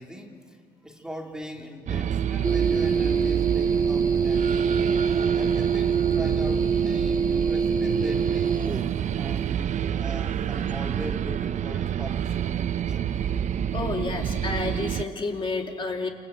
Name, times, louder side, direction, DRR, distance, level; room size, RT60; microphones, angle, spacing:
voice 1, 0.0-4.8 5.0-8.6 9.1-13.1, equal, 5° right, 2 dB, 2.6 m, -40 dB
sound 1, 1.9-15.0, right 9 dB, 45° right, 0.6 m, -28 dB
sound 2, 2.4-8.9, right 6 dB, 20° right, 1.6 m, -24 dB
voice 2, 13.7-16.1, left 3 dB, 30° left, 2 dB, 2.5 m, -30 dB
28.0 x 25.0 x 8.0 m, 2.3 s
cardioid pair, 110°, 17 cm